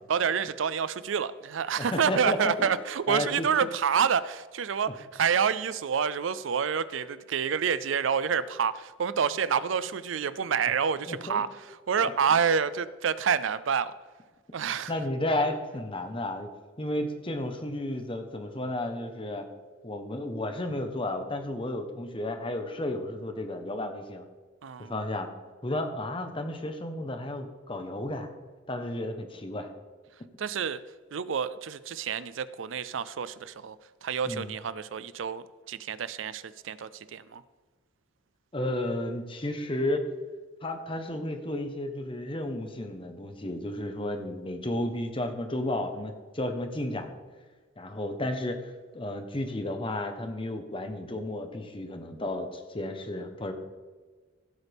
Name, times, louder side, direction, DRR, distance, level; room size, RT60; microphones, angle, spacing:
voice 1, 0.1-13.9 14.5-14.9 24.6-24.9 30.4-30.8 31.1-33.8 34.0-37.4, right 7 dB, 85° right, 16 dB, 0.5 m, -28 dB
voice 2, 1.8-2.7 3.1-3.5 11.1-11.4 12.0-12.1 14.9-16.5 16.8-19.4 19.8-24.3 24.8-25.3 25.6-28.3 28.7-29.7 34.3-34.6 38.5-40.0 40.6-47.1 47.8-53.5, left 1 dB, 25° left, 6 dB, 1.1 m, -32 dB
15.5 x 8.2 x 3.5 m, 1.4 s
head